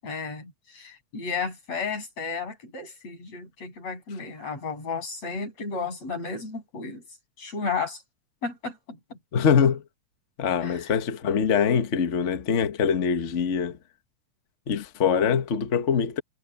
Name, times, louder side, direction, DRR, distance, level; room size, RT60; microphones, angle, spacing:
voice 1, 0.0-7.0 7.4-8.0 8.4-9.2 10.6-10.9, left 5 dB, 55° left, 9.0 m, -33 dB
voice 2, 9.3-9.8 10.4-13.8 14.7-16.2, left 7 dB, 85° left, 0.6 m, -23 dB
omnidirectional pair, 3.4 m